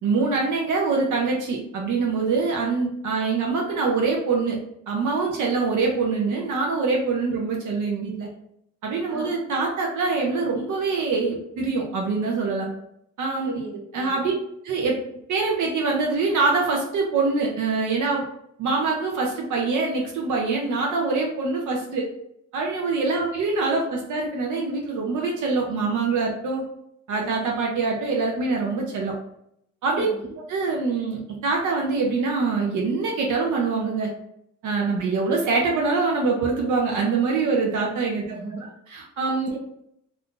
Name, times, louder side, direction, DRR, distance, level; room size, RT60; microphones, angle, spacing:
voice 1, 0.0-4.6 4.9-8.3 8.8-12.7 13.2-13.6 13.9-14.3 14.6-15.0 15.3-18.2 18.6-22.1 22.5-26.6 27.1-29.1 29.8-30.1 30.5-34.1 34.6-38.4 38.9-39.5, right 4 dB, 65° right, -1 dB, 0.6 m, -24 dB
voice 2, 13.4-14.2 30.0-30.3 38.2-38.7 39.5-39.6, right 2 dB, 35° right, 0 dB, 0.8 m, -36 dB
2.5 x 2.4 x 3.6 m, 0.74 s
cardioid pair, 135°, 33 cm